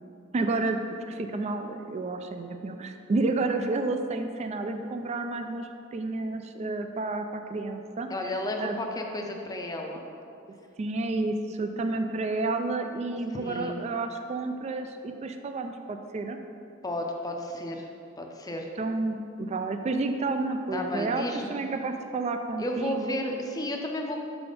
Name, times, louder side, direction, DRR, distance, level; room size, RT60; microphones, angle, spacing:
voice 1, 0.3-0.8 1.1-8.1 8.6-8.8 10.8-16.4 18.8-23.2, right 3 dB, 30° right, 6 dB, 0.3 m, -30 dB
voice 2, 8.1-10.0 13.3-13.8 16.8-17.9 18.2-18.7 20.7-21.6 22.6-24.2, left 1 dB, 20° left, 2 dB, 0.5 m, -33 dB
5.6 x 4.1 x 5.1 m, 2.6 s
head